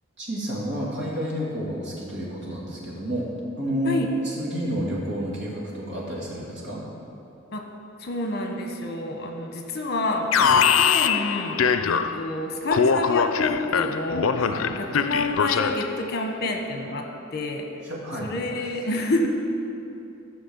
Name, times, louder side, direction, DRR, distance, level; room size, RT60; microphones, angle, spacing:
voice 1, 0.2-3.3 3.6-6.8 10.4-10.6 14.4-14.7 17.8-18.3, equal, 60° right, -4 dB, 2.8 m, -30 dB
voice 2, 8.0-14.5 14.8-17.7 18.2-19.3, left 1 dB, 55° left, 3 dB, 1.2 m, -29 dB
Alarm, 10.3-12.3 12.7-16.0, left 6 dB, 85° left, 0.5 m, -22 dB
13.0 x 6.3 x 7.2 m, 2.7 s
head